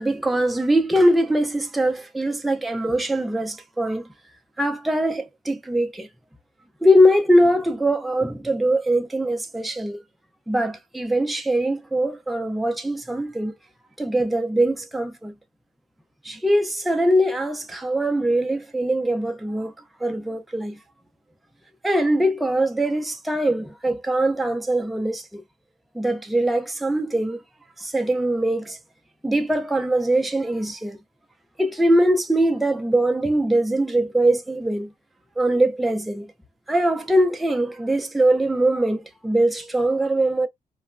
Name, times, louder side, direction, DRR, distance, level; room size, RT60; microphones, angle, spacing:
voice 1, 0.0-4.1 4.6-6.1 6.8-10.0 10.5-13.5 14.0-15.3 16.2-19.7 20.0-20.8 21.8-25.4 25.9-27.4 27.8-28.8 29.2-31.0 31.6-34.9 35.4-36.2 36.7-40.5, right 1 dB, ahead, 0.3 m, -22 dB
3.0 x 2.0 x 2.4 m
cardioid pair, 125°, 14 cm